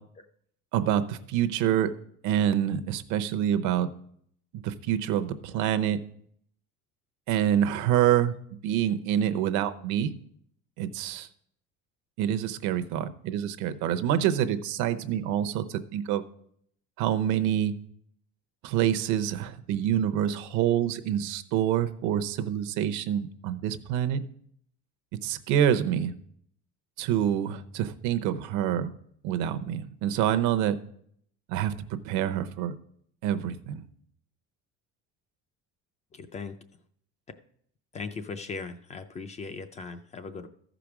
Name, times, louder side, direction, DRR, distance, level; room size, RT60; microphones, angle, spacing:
voice 1, 0.7-1.9 2.2-3.9 4.6-6.0 7.3-8.3 8.6-10.1 10.8-11.3 12.2-16.2 17.0-17.7 18.6-24.2 25.2-26.1 27.0-28.9 29.2-30.8 31.5-31.7 32.0-32.7 33.2-33.8, right 10 dB, 70° right, 10 dB, 0.8 m, -26 dB
voice 2, 36.1-36.5 37.9-40.5, left 4 dB, 20° left, 9 dB, 0.4 m, -38 dB
13.5 x 5.0 x 6.0 m, 0.67 s
cardioid pair, 170°, 32 cm